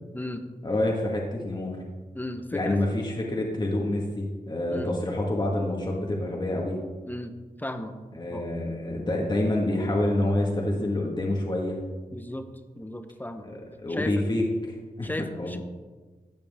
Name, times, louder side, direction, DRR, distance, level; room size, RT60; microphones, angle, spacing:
voice 1, 0.6-1.8 2.5-6.7 8.1-11.8 13.4-15.1 15.3-15.6, left 1 dB, 30° left, -1 dB, 1.6 m, -27 dB
voice 2, 2.1-2.8 4.7-4.9 7.1-8.0 8.3-8.5 12.1-12.5 12.8-13.5 13.9-14.2 15.0-15.6, left 1 dB, 10° left, 8 dB, 0.9 m, -35 dB
12.5 x 7.6 x 3.6 m, 1.4 s
cardioid pair, 60°, 15 cm